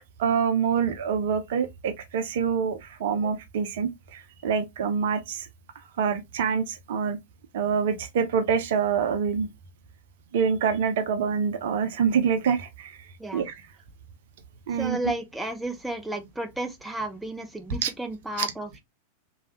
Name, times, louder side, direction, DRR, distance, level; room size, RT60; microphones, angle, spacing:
voice 1, 0.2-5.5 6.0-7.2 7.5-9.5 10.3-13.0 13.3-13.5 14.7-15.0 17.8-17.9, right 6 dB, 55° right, 0.7 m, -26 dB
voice 2, 14.7-18.8, right 1 dB, 5° right, 0.5 m, -33 dB
3.1 x 2.3 x 2.9 m
figure-of-eight pair, 90°, 0 cm